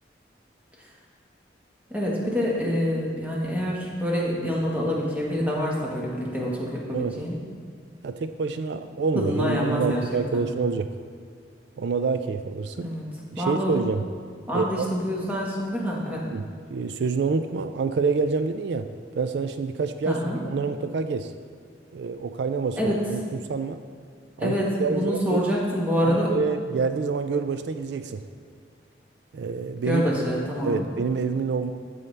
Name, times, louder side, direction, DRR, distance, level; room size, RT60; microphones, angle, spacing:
voice 1, 1.9-7.4 9.1-10.0 10.3-10.4 12.8-13.0 13.4-13.8 14.5-16.2 20.1-20.4 22.8-23.0 24.4-26.3 29.8-30.9, equal, 10° right, -4 dB, 1.5 m, -26 dB
voice 2, 8.0-10.9 11.8-12.9 13.3-14.0 14.5-14.9 16.3-16.5 16.7-21.3 21.9-23.2 23.5-23.8 24.4-25.4 26.0-28.2 29.3-30.0 30.6-31.7, right 4 dB, 75° right, 9 dB, 0.4 m, -27 dB
14.5 x 5.4 x 3.3 m, 2.1 s
head